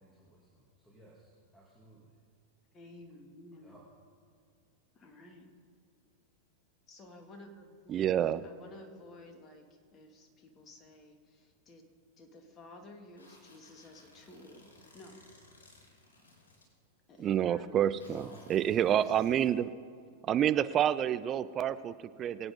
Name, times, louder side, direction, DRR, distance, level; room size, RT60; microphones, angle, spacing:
voice 1, 0.0-2.2 3.6-3.8 18.0-18.6, right 1 dB, 10° left, -4 dB, 2.4 m, -55 dB
voice 2, 2.7-3.8 4.9-5.5 6.9-11.9 12.2-14.7 14.9-15.2 17.1-18.0 18.8-19.2 20.1-20.2, left 1 dB, 30° left, 4 dB, 2.1 m, -53 dB
voice 3, 7.9-8.4 17.2-19.7 20.2-22.5, right 10 dB, 35° right, 14 dB, 0.5 m, -28 dB
sound 1, 13.2-16.6 17.1-17.3 18.0-19.5, left 2 dB, 75° left, 3.6 m, -60 dB
23.0 x 8.9 x 3.7 m, 2.2 s
figure-of-eight pair, 95°, 0 cm